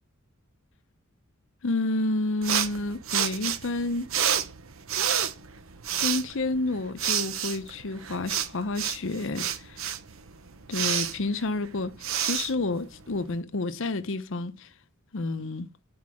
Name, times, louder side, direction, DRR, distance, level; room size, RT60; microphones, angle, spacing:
voice 1, 1.6-4.1 6.0-9.9 10.7-14.7 15.1-15.7, left 2 dB, 60° left, 0.7 m, -30 dB
sound 1, 2.4-13.4, right 9 dB, 65° right, 0.9 m, -30 dB
9.6 x 4.7 x 6.1 m
head